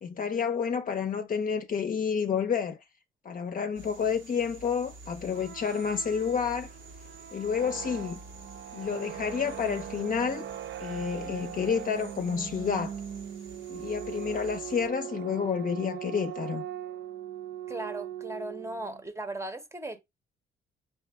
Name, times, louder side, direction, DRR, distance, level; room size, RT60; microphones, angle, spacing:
voice 1, 0.0-2.8 3.2-6.7 7.3-8.2 8.7-10.5 10.8-12.9 13.7-16.6, left 6 dB, 45° left, 0.7 m, -30 dB
sound 1, 3.7-14.9, right 2 dB, 90° right, 1.4 m, -49 dB
sound 2, 5.2-19.0, right 10 dB, 60° right, 0.5 m, -40 dB
voice 2, 17.7-20.0, right 2 dB, 15° right, 0.9 m, -37 dB
4.5 x 2.8 x 3.5 m
cardioid pair, 90°, 20 cm